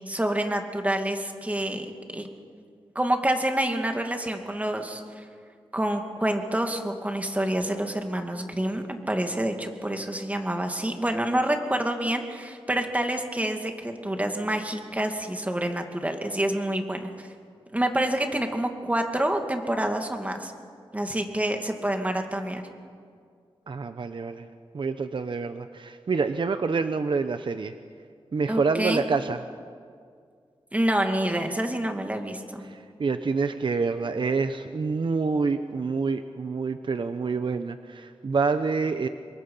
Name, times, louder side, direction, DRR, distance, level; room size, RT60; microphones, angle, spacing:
voice 1, 0.0-2.3 2.9-5.2 5.7-17.1 17.7-20.5 20.9-22.6 28.5-29.1 30.7-32.7, right 1 dB, 15° right, 4 dB, 2.4 m, -27 dB
voice 2, 23.7-24.5 24.7-27.7 28.3-29.4 32.6-39.1, right 4 dB, 55° right, 9 dB, 0.9 m, -27 dB
27.0 x 22.5 x 5.6 m, 2.1 s
wide cardioid pair, 80°, 10 cm